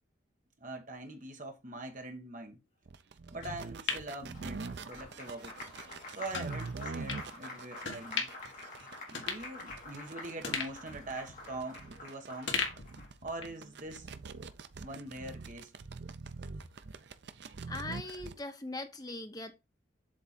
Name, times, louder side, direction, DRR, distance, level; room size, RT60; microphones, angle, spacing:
voice 1, 0.6-2.6 3.3-5.6 6.1-8.3 9.1-12.6 13.2-14.1 14.8-15.7, right 2 dB, 40° right, 1.3 m, -43 dB
sound 1, 2.9-18.4, right 4 dB, 55° right, 0.5 m, -44 dB
sound 2, 3.4-5.0 5.4-5.5 6.3-6.5 7.1-7.2 7.8-8.5 8.8-8.9 9.1-10.0 10.4-12.0 12.5-13.6 14.0-14.1, left 5 dB, 65° left, 1.6 m, -38 dB
Applause, 4.3-13.1, left 2 dB, 40° left, 2.4 m, -48 dB
voice 2, 17.7-19.5, left 2 dB, 20° left, 0.8 m, -40 dB
7.6 x 3.6 x 4.2 m
head